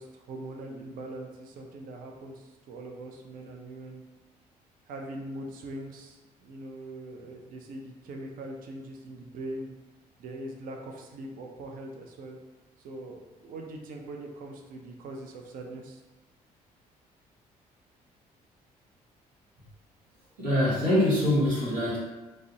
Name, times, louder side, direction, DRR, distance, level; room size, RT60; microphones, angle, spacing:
voice 1, 0.0-4.0 4.9-9.7 10.2-12.4 12.8-16.0, right 1 dB, 45° right, 2 dB, 0.4 m, -41 dB
voice 2, 20.4-22.0, left 1 dB, 75° right, -7 dB, 0.9 m, -24 dB
2.5 x 2.0 x 2.6 m, 1.1 s
figure-of-eight pair, 45°, 20 cm